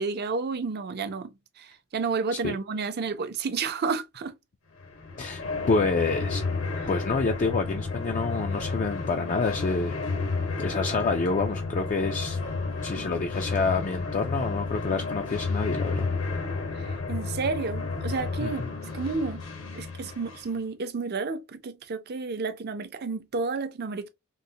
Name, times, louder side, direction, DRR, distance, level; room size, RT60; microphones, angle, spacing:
voice 1, 0.0-4.3 16.7-18.7 18.9-19.4 19.7-24.1, right 4 dB, 50° right, 0.5 m, -31 dB
sound 1, 4.8-20.6, left 3 dB, 70° left, 1.1 m, -31 dB
voice 2, 5.2-6.4 6.9-10.0 10.6-12.4 12.8-16.1 18.4-18.7, left 4 dB, 35° left, 0.4 m, -28 dB
3.9 x 2.1 x 2.6 m
head